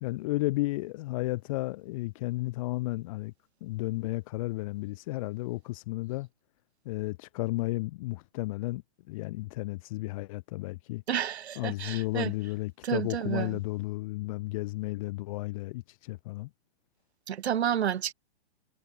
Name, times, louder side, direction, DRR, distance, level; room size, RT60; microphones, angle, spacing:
voice 1, 0.0-3.3 3.6-6.3 6.8-11.0 11.6-16.5, left 20 dB, 30° left, 0.9 m, -33 dB
voice 2, 11.1-12.5 12.8-13.6 17.3-18.1, right 9 dB, 75° right, 1.6 m, -30 dB
hypercardioid pair, 155°, 32 cm